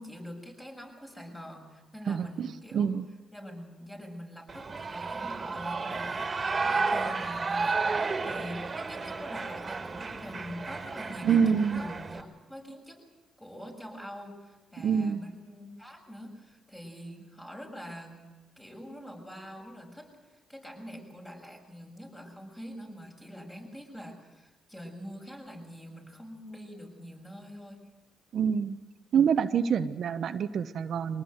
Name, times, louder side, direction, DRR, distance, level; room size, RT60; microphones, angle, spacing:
voice 1, 0.0-2.9 3.3-13.0 13.4-18.2 18.6-27.8, equal, 15° left, 1 dB, 7.2 m, -44 dB
voice 2, 2.1-3.0 11.2-11.8 14.8-15.2 28.3-28.8 29.1-31.2, right 7 dB, 60° right, 9 dB, 0.9 m, -26 dB
Shout / Cheering, 4.5-12.2, right 4 dB, 30° right, 2.5 m, -32 dB
23.5 x 19.0 x 8.0 m, 1.2 s
cardioid pair, 90°, 0 cm